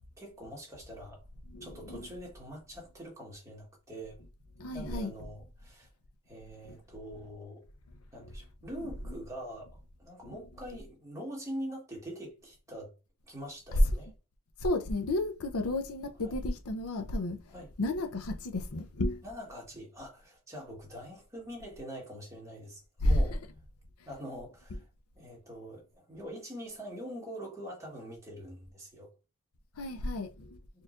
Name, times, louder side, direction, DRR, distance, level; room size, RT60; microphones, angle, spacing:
voice 1, 0.2-1.2 1.6-4.2 4.7-5.9 6.3-7.6 8.1-12.9 13.3-14.1 16.2-16.4 17.5-17.7 19.2-23.4 24.0-24.8 25.2-29.1, equal, 15° right, 1.5 m, -44 dB
voice 2, 1.5-2.1 4.6-5.1 6.6-6.8 8.8-9.1 10.2-10.4 13.7-13.8 14.6-19.2 23.0-23.4 29.8-30.6, left 1 dB, 80° left, 0.6 m, -32 dB
4.2 x 3.1 x 2.5 m
head